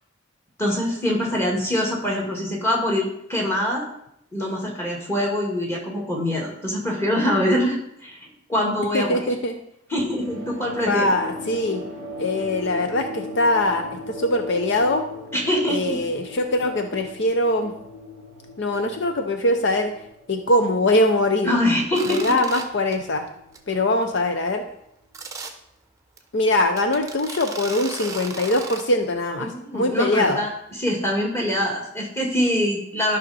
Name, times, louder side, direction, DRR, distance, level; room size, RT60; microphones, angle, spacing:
voice 1, 0.6-3.9 4.3-8.2 8.5-9.3 9.9-11.1 15.3-16.0 21.4-22.2 29.4-30.5 30.8-33.2, left 1 dB, 10° left, -2 dB, 2.0 m, -24 dB
voice 2, 8.9-9.6 10.9-11.8 12.2-15.0 15.7-17.7 18.6-19.9 20.3-21.6 22.0-23.3 23.7-24.6 26.3-30.4, left 1 dB, 60° left, 6 dB, 0.7 m, -22 dB
sound 1, 9.9-24.8, left 1 dB, 85° left, 3.2 m, -39 dB
sound 2, 21.9-22.6 22.9-23.2 23.5-23.6 24.0-24.1 25.1-25.5 26.2-26.3 26.8-28.8, right 4 dB, 15° right, 0.8 m, -35 dB
12.0 x 5.7 x 4.2 m, 0.76 s
head